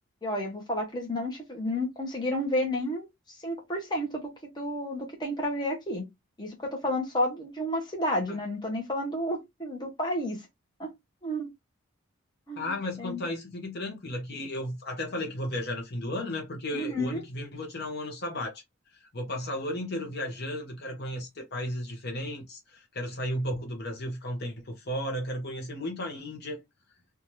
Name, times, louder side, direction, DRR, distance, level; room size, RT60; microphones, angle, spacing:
voice 1, 0.2-3.1 3.4-4.3 4.6-6.0 6.4-10.4 10.8-10.9 11.2-11.5 12.5-13.2 16.7-17.2, left 1 dB, 20° left, 0.9 m, -31 dB
voice 2, 12.6-18.6 19.1-26.6, left 1 dB, 50° left, 0.8 m, -34 dB
2.7 x 2.4 x 3.0 m
head